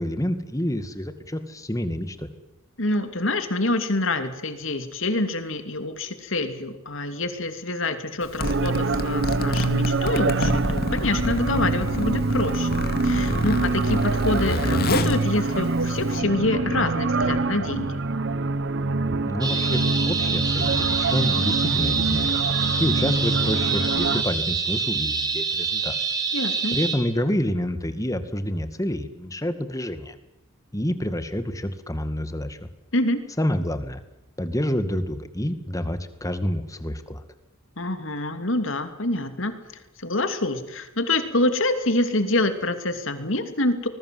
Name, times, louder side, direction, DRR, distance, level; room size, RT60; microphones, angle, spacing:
voice 1, 0.0-2.3 19.3-22.4 22.8-26.0 26.7-30.2 30.7-32.7 33.4-34.0 34.4-37.2, equal, 15° left, 10 dB, 2.1 m, -28 dB
voice 2, 2.8-12.8 13.0-17.9 26.3-26.8 32.9-33.2 37.8-43.9, left 2 dB, 65° left, 8 dB, 2.9 m, -26 dB
Zipper (clothing), 8.2-16.2, left 1 dB, 50° left, 2.3 m, -28 dB
sound 1, 8.4-24.2, right 3 dB, 60° right, 1.1 m, -25 dB
sound 2, 19.4-27.0, right 5 dB, 20° right, 4.5 m, -26 dB
25.5 x 21.0 x 7.9 m, 0.96 s
head